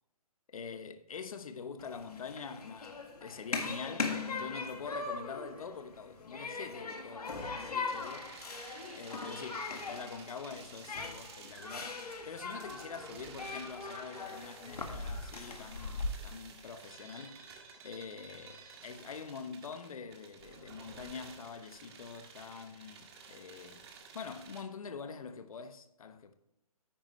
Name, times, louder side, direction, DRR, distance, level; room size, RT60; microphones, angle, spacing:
voice 1, 0.5-8.3 8.9-23.8 24.1-26.3, left 5 dB, 65° left, 1.1 m, -45 dB
Human group actions, 1.8-16.1, left 4 dB, 80° left, 1.8 m, -40 dB
sound 1, 7.9-24.6, right 5 dB, 45° right, 1.9 m, -53 dB
Crying sobbing / Screech, 11.5-12.1 12.4-13.9 14.7-15.4, equal, ahead, 0.6 m, -55 dB
10.5 x 8.7 x 3.1 m
hypercardioid pair, 145°, 19 cm